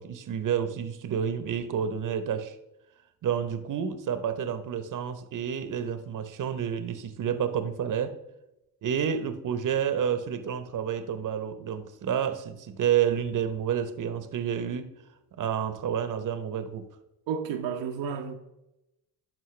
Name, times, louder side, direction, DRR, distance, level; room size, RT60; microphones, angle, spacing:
voice 1, 0.0-2.6 3.2-8.2 8.8-14.9 15.4-16.9, right 8 dB, 45° right, 1.0 m, -29 dB
voice 2, 17.3-18.4, right 7 dB, 70° right, 0.9 m, -31 dB
12.0 x 4.5 x 3.2 m
supercardioid pair, 70°, 45 cm